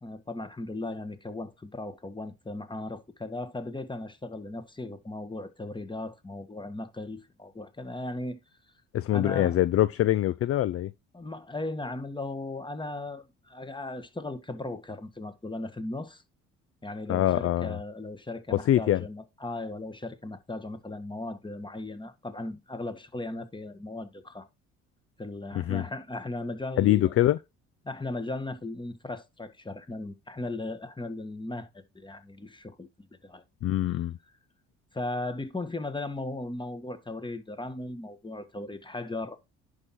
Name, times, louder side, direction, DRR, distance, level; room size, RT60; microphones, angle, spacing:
voice 1, 0.0-8.4 9.1-9.6 11.1-16.2 16.8-24.5 25.2-27.1 27.8-33.4 34.9-39.4, left 2 dB, 15° left, 1.6 m, -37 dB
voice 2, 8.9-10.9 17.1-17.8 18.5-19.0 25.5-25.8 26.8-27.4 33.6-34.2, left 13 dB, 40° left, 0.5 m, -24 dB
10.5 x 4.7 x 4.3 m
hypercardioid pair, 55°, 35 cm